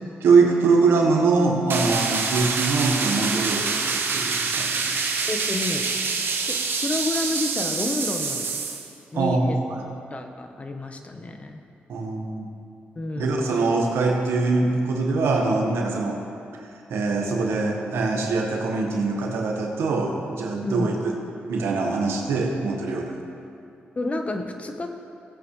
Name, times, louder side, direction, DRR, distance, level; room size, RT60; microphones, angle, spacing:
voice 1, 0.2-5.0 9.1-9.9 11.9-12.5 13.2-16.2 16.5-21.2 21.5-23.2, right 3 dB, 80° right, 1 dB, 1.4 m, -23 dB
sound 1, 1.7-8.9, right 4 dB, 60° right, 1.0 m, -26 dB
voice 2, 5.3-8.5 9.1-9.6 10.1-11.6 13.0-13.4 20.6-20.9 24.0-24.9, left 2 dB, 35° left, 5 dB, 1.1 m, -30 dB
16.5 x 8.4 x 3.2 m, 2.6 s
cardioid pair, 60°, 4 cm